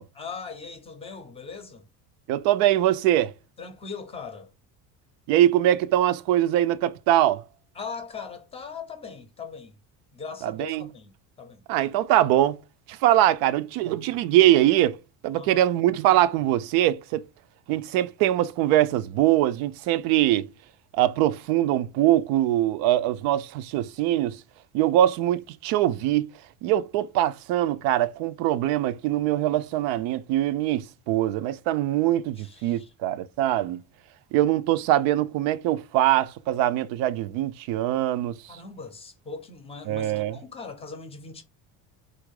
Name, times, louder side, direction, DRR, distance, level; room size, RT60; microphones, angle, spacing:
voice 1, 0.2-1.8 3.6-4.5 7.7-9.8 10.1-11.1 11.4-11.6 15.3-15.7 32.4-32.9 38.5-41.4, left 5 dB, 15° left, 0.6 m, -40 dB
voice 2, 2.3-3.3 5.3-7.4 10.4-10.9 11.7-12.6 12.9-17.2 17.7-20.5 20.9-24.4 24.7-26.3 26.6-33.8 34.3-38.6 39.9-40.4, right 13 dB, 75° right, 0.6 m, -23 dB
4.4 x 2.5 x 4.7 m
cardioid pair, 170°, 35 cm